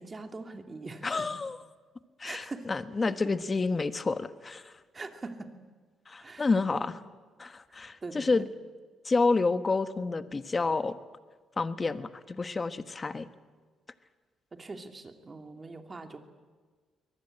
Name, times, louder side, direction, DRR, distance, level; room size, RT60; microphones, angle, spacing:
voice 1, 0.0-1.3 2.2-2.7 4.9-5.5 6.2-7.0 8.0-8.4 14.5-16.2, right 3 dB, 30° right, 6 dB, 2.5 m, -42 dB
voice 2, 1.0-1.6 2.2-4.8 6.1-7.0 7.4-8.5 9.0-11.0 11.6-13.3, left 3 dB, 30° left, 11 dB, 1.3 m, -29 dB
23.0 x 19.0 x 8.9 m, 1.5 s
cardioid pair, 90°, 0 cm